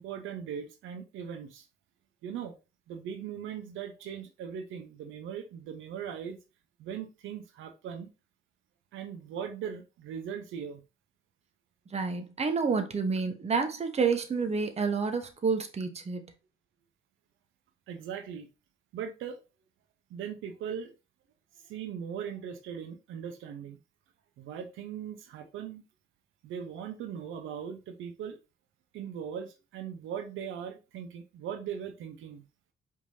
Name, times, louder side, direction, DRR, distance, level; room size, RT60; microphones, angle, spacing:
voice 1, 0.0-1.7 2.2-2.6 2.9-6.4 6.8-8.1 8.9-10.8 17.9-18.5 18.9-19.4 20.1-20.9 21.6-23.8 24.4-25.8 26.4-28.4 28.9-32.4, right 8 dB, 85° right, 0.7 m, -39 dB
voice 2, 11.9-16.2, right 5 dB, 30° right, 0.9 m, -29 dB
4.8 x 3.6 x 2.6 m
cardioid pair, 90°, 20 cm